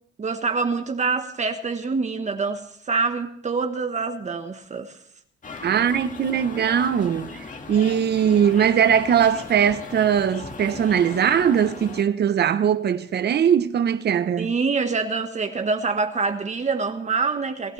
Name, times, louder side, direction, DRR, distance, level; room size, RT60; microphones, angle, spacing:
voice 1, 0.2-4.9 14.4-17.7, right 4 dB, 35° right, 1.3 m, -25 dB
sound 1, 5.4-12.0, left 4 dB, 40° left, 1.9 m, -38 dB
voice 2, 5.6-14.5, right 8 dB, 55° right, 0.9 m, -20 dB
29.0 x 12.5 x 3.3 m
cardioid pair, 90°, 20 cm